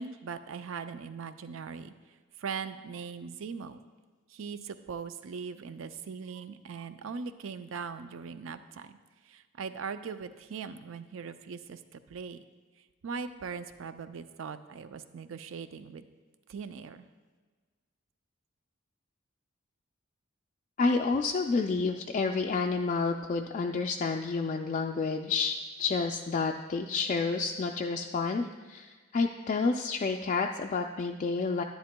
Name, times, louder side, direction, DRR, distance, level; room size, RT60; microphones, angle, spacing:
voice 1, 0.0-1.9 2.4-3.8 4.3-9.0 9.3-12.4 13.0-16.1 16.5-17.1, right 5 dB, 80° right, 11 dB, 0.4 m, -40 dB
voice 2, 20.8-31.6, left 4 dB, 40° left, 2 dB, 0.3 m, -29 dB
10.5 x 10.0 x 2.2 m, 1.4 s
head